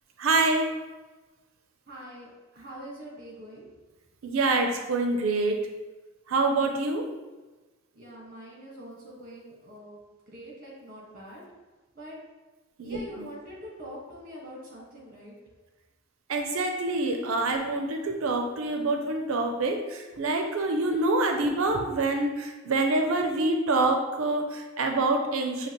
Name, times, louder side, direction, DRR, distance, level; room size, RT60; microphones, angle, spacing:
voice 1, 0.2-0.7 4.2-5.6 6.3-7.0 12.8-13.3 16.3-25.7, right 2 dB, 70° right, 4 dB, 0.5 m, -26 dB
voice 2, 1.9-3.6 7.9-10.0 10.3-11.4 11.9-12.2 12.8-15.4, equal, 40° right, -4 dB, 1.4 m, -44 dB
6.4 x 2.8 x 3.0 m, 1.2 s
head